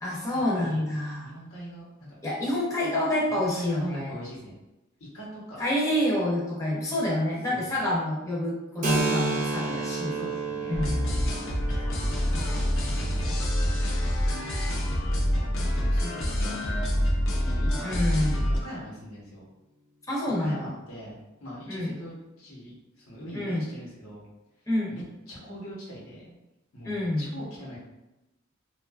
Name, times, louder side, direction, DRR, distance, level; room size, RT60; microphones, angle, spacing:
voice 1, 0.0-1.3 2.2-4.2 5.6-10.1 10.7-11.0 17.8-18.5 20.1-20.7 21.7-21.9 23.3-23.6 24.7-25.0 26.8-27.3, left 1 dB, 15° left, -5 dB, 0.6 m, -27 dB
voice 2, 0.5-0.8 1.2-2.2 3.3-4.6 5.0-5.6 7.4-7.7 9.6-10.8 11.7-13.8 14.5-18.0 18.5-19.5 20.4-24.2 24.9-26.4 26.7-27.8, equal, 90° left, -6 dB, 1.0 m, -42 dB
Keyboard (musical), 8.8-16.2, right 3 dB, 35° right, 0.5 m, -33 dB
sound 1, 10.7-18.6, equal, 65° left, 0.5 m, -26 dB
2.7 x 2.3 x 2.3 m, 0.97 s
head